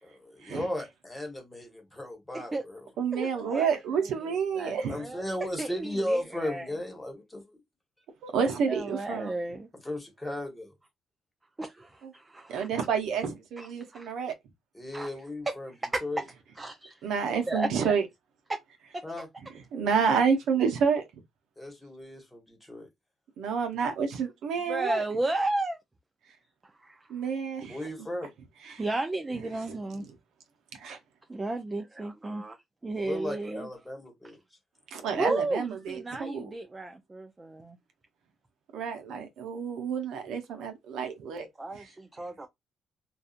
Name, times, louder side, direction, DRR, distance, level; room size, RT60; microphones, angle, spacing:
voice 1, 0.0-2.8 4.9-7.6 9.8-10.7 14.7-15.7 16.0-16.2 19.0-19.3 21.6-22.9 27.7-28.3 33.0-34.4, left 1 dB, 10° left, 1.2 m, -35 dB
voice 2, 2.3-2.6 3.1-5.2 5.6-6.7 8.7-9.7 11.6-12.7 13.6-14.1 14.9-15.1 15.5-16.2 16.6-17.1 17.5-17.7 18.5-18.6 18.9-19.0 24.7-25.8 26.6-27.1 28.8-30.1 31.3-33.7 35.2-37.8 41.6-42.5, right 2 dB, 20° right, 0.4 m, -34 dB
voice 3, 3.0-5.0 8.2-9.3 12.5-14.3 17.0-18.0 19.7-21.0 23.4-25.0 27.1-27.9 28.6-28.8 29.7-29.8 30.8-31.0 34.9-36.5 38.7-41.5, right 6 dB, 80° right, 0.6 m, -29 dB
2.7 x 2.3 x 2.4 m
cardioid pair, 90°, 0 cm